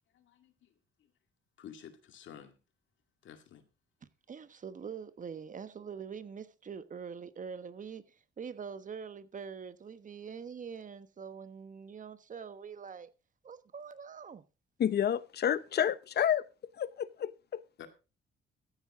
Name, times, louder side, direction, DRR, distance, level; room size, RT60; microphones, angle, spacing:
voice 1, 0.1-0.7 1.0-1.1 1.6-2.6 3.2-3.6 17.8-17.9, left 9 dB, 70° left, 2.2 m, -51 dB
voice 2, 4.3-13.1 13.4-14.4, right 6 dB, 40° right, 1.2 m, -44 dB
voice 3, 14.8-16.4 16.8-17.6, left 9 dB, 55° left, 0.9 m, -30 dB
14.5 x 9.4 x 3.7 m
cardioid pair, 90°, 20 cm